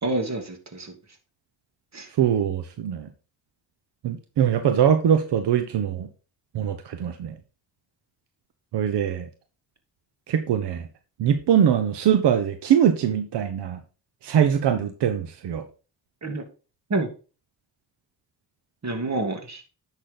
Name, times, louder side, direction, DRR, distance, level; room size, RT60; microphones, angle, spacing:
voice 1, 0.0-0.9 1.9-2.1 16.2-16.4 16.9-17.1 18.8-19.6, right 2 dB, 40° right, 4 dB, 2.9 m, -28 dB
voice 2, 2.2-3.1 4.0-6.1 6.5-7.4 8.7-9.3 10.3-10.9 11.2-13.8 14.2-15.6, right 9 dB, 85° right, 8 dB, 1.1 m, -22 dB
10.5 x 6.4 x 3.9 m, 0.34 s
cardioid pair, 75°, 40 cm